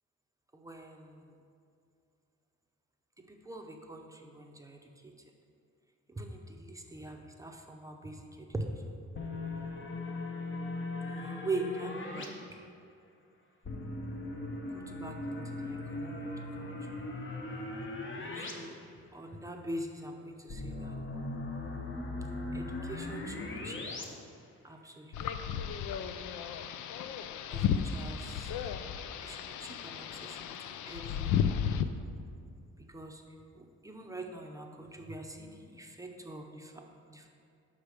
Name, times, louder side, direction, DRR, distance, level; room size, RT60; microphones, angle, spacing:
voice 1, 0.5-1.4 3.2-5.2 6.1-8.6 11.1-12.6 14.7-16.9 18.3-18.8 19.1-20.9 22.5-23.8 24.6-25.2 27.5-28.5 29.2-31.4 32.9-33.2 33.5-37.3, right 2 dB, 10° right, 2 dB, 0.7 m, -43 dB
sound 1, 9.1-12.3 13.6-18.5 18.8-18.9 20.5-24.0, left 2 dB, 40° left, 1.0 m, -39 dB
sound 2, 25.1-31.8, left 8 dB, 75° left, 0.5 m, -34 dB
5.7 x 5.0 x 6.4 m, 2.4 s
cardioid pair, 90°, 30 cm